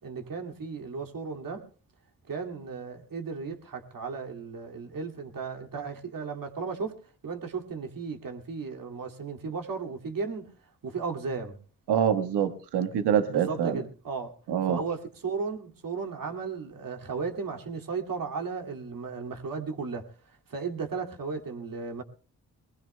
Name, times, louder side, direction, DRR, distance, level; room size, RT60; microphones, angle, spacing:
voice 1, 0.0-1.7 2.3-10.5 10.8-11.6 13.3-14.3 14.7-20.1 20.5-22.0, right 5 dB, 50° right, 2.4 m, -35 dB
voice 2, 11.9-13.8 14.5-14.8, right 9 dB, 70° right, 1.5 m, -25 dB
23.0 x 21.0 x 2.2 m
hypercardioid pair, 40°, 42 cm